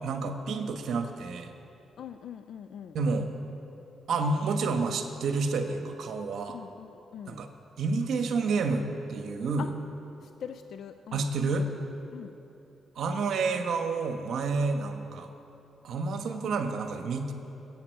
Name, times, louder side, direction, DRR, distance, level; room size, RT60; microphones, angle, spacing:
voice 1, 0.0-1.5 2.9-3.3 4.1-6.6 7.3-7.5 7.8-9.7 11.1-11.7 12.9-15.3 15.8-17.3, right 4 dB, 70° right, 6 dB, 1.2 m, -29 dB
voice 2, 2.0-3.0 6.5-7.4 9.6-9.7 10.2-11.3 12.1-12.4, left 8 dB, 70° left, 9 dB, 0.4 m, -42 dB
21.5 x 8.6 x 4.6 m, 2.9 s
cardioid pair, 65°, 0 cm